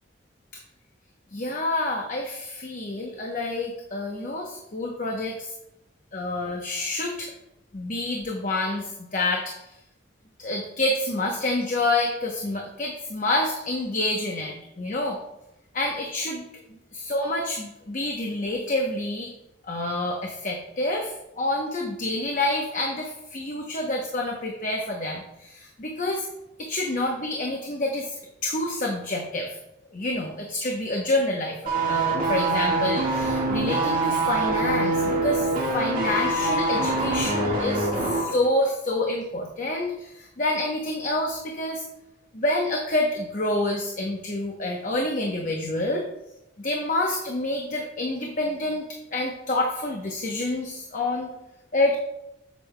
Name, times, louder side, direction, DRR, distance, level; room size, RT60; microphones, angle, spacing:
voice 1, 1.3-5.5 6.1-7.3 7.7-9.7 10.4-15.2 15.7-16.4 16.9-19.3 19.7-26.3 26.6-29.6 29.9-41.8 42.3-46.0 46.6-51.3 51.7-52.0, left 2 dB, 40° left, 1 dB, 0.8 m, -28 dB
sound 1, 31.7-38.3 38.6-38.8, right 2 dB, 45° right, 1.6 m, -24 dB
8.2 x 7.5 x 2.2 m, 0.87 s
head